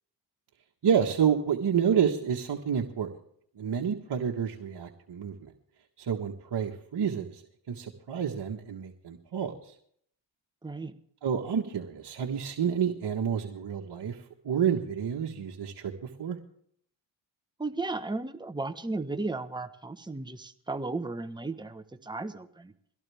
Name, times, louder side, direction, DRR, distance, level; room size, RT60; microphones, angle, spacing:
voice 1, 0.8-3.1 3.6-5.5 6.1-7.4 7.7-9.5 11.2-14.2 14.4-15.7 16.2-16.4, right 7 dB, 55° right, 0 dB, 1.6 m, -29 dB
voice 2, 10.6-10.9 17.6-22.7, right 3 dB, 10° right, 9 dB, 1.2 m, -35 dB
22.5 x 17.0 x 3.6 m, 0.66 s
cardioid pair, 55°, 49 cm